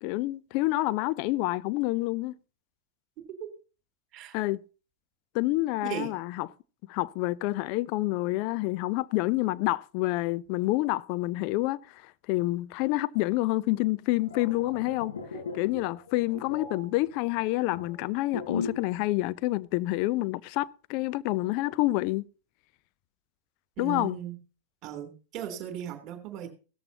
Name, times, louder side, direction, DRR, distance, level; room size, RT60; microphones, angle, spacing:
voice 1, 0.0-2.3 4.3-4.6 5.3-6.5 6.9-15.1 15.5-22.2 23.8-24.2, left 19 dB, 45° left, 0.6 m, -28 dB
voice 2, 5.8-6.1 23.8-24.4 24.8-26.5, right 10 dB, 35° right, 3.2 m, -37 dB
sound 1, 14.0-18.9 19.2-19.5, left 4 dB, 70° left, 4.4 m, -38 dB
16.5 x 13.5 x 2.9 m
figure-of-eight pair, 90°, 0 cm